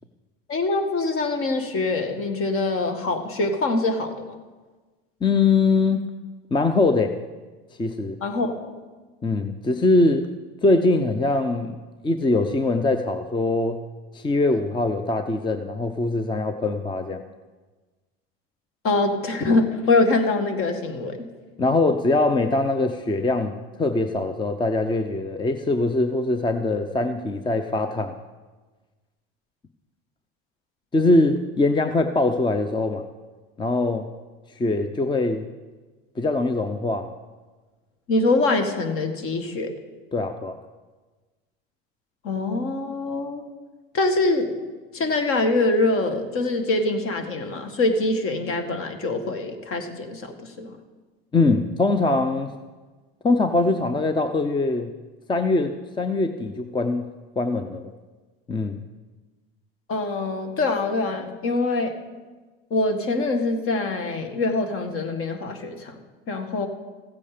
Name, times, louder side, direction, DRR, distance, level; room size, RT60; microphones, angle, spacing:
voice 1, 0.5-4.4 8.2-8.7 18.8-21.3 38.1-39.7 42.2-43.4 43.9-44.6 44.9-50.8 59.9-62.0 62.7-66.0 66.3-66.7, left 2 dB, 45° left, 6 dB, 1.9 m, -24 dB
voice 2, 5.2-6.1 6.5-7.1 7.8-8.2 9.2-10.3 10.6-11.8 12.0-13.8 14.1-17.2 21.6-28.1 30.9-33.1 33.6-34.1 34.6-35.5 36.2-37.1 40.1-40.6 51.3-52.5 53.2-54.9 55.3-57.0 57.4-57.9 58.5-58.8, left 2 dB, 15° left, 8 dB, 0.6 m, -22 dB
15.5 x 8.4 x 5.1 m, 1.3 s
supercardioid pair, 100°, 30 cm